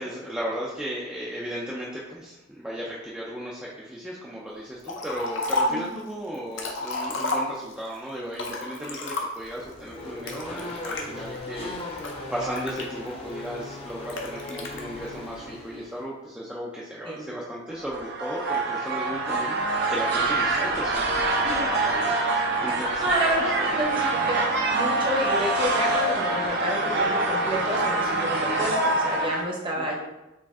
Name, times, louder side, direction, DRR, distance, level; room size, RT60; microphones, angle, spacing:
voice 1, 0.0-11.8 12.3-19.6 19.9-23.0 23.4-23.8 29.8-29.9, equal, 5° right, -5 dB, 0.4 m, -35 dB
Liquid, 4.9-5.9 6.3-7.9 8.3-9.6 10.3-11.0 11.6-13.3 14.1-14.8, left 2 dB, 60° left, 0.6 m, -31 dB
voice 2, 5.7-6.0 17.1-17.2 23.0-24.5 24.7-29.9, right 1 dB, 25° right, -2 dB, 0.8 m, -29 dB
Race car auto racing / Accelerating revving vroom, 9.3-16.0, left 1 dB, 30° left, 0.7 m, -38 dB
sound 1, 17.8-29.4, right 2 dB, 55° right, 0.6 m, -25 dB
4.6 x 2.5 x 3.5 m, 1.0 s
head